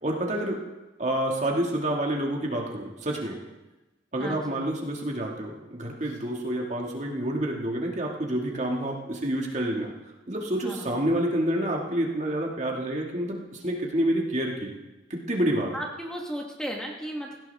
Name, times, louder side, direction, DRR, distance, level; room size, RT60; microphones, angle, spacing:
voice 1, 0.0-0.6 1.0-3.4 4.1-9.9 10.3-14.8 15.1-15.7, right 1 dB, 40° right, 0 dB, 2.0 m, -28 dB
voice 2, 4.2-4.6 10.6-10.9 15.7-17.4, equal, 5° left, 0 dB, 1.4 m, -35 dB
17.0 x 16.5 x 3.5 m, 1.1 s
head